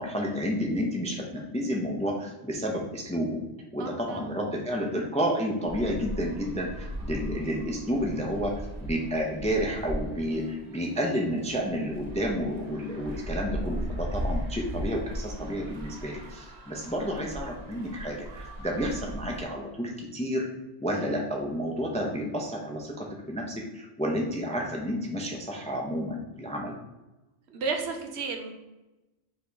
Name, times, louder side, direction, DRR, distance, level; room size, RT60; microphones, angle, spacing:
voice 1, 0.0-3.4 3.7-20.5 20.8-26.8, equal, 10° left, 0 dB, 0.4 m, -30 dB
voice 2, 3.8-4.3 27.5-28.5, right 4 dB, 75° right, 4 dB, 1.0 m, -33 dB
sound 1, 5.7-19.4, right 1 dB, 45° right, 0.6 m, -38 dB
4.9 x 2.9 x 3.3 m, 1.0 s
omnidirectional pair, 1.1 m